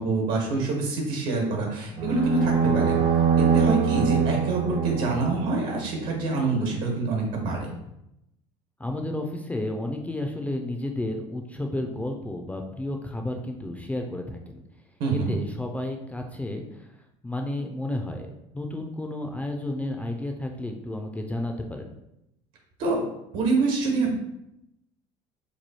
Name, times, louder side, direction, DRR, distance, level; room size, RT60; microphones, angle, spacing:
voice 1, 0.0-3.0 3.5-7.7 15.0-15.4 22.8-23.0 23.3-24.1, right 3 dB, 75° right, 1 dB, 1.2 m, -26 dB
sound 1, 2.0-6.2, right 6 dB, 35° right, 0.6 m, -24 dB
voice 2, 8.8-14.6 15.1-16.9 17.2-21.9, left 1 dB, 10° left, 3 dB, 0.3 m, -32 dB
3.1 x 2.3 x 4.1 m, 0.84 s
cardioid pair, 110°, 15 cm